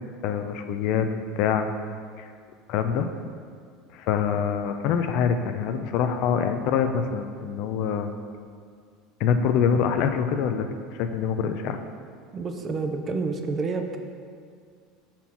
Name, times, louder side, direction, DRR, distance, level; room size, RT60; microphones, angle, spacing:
voice 1, 0.2-1.1 1.4-1.7 2.2-2.3 2.7-3.1 3.9-8.1 9.2-11.8, left 7 dB, 65° left, 8 dB, 0.5 m, -25 dB
voice 2, 12.3-14.0, right 4 dB, 30° right, 5 dB, 0.6 m, -29 dB
5.9 x 4.4 x 5.6 m, 2.1 s
supercardioid pair, 110°, 0 cm